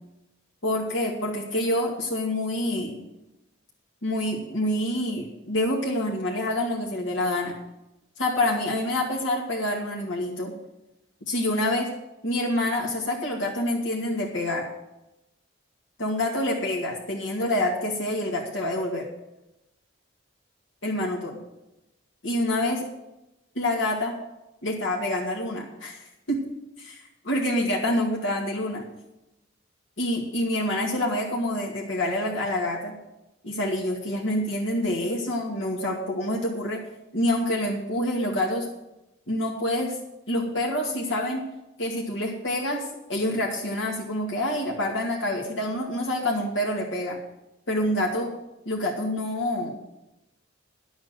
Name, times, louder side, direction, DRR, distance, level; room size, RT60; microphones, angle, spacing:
voice 1, 0.6-3.0 4.0-7.5 8.2-10.5 11.3-11.9 12.2-14.6 16.0-19.1 20.8-21.4 22.2-22.8 23.6-24.2 24.6-26.4 26.8-28.8 30.0-32.9 33.4-36.8 37.1-38.7 39.3-40.0 40.3-41.4 41.8-47.2 47.7-48.3 48.7-49.8, left 1 dB, 70° left, -3 dB, 2.3 m, -27 dB
11.0 x 8.0 x 7.8 m, 0.93 s
head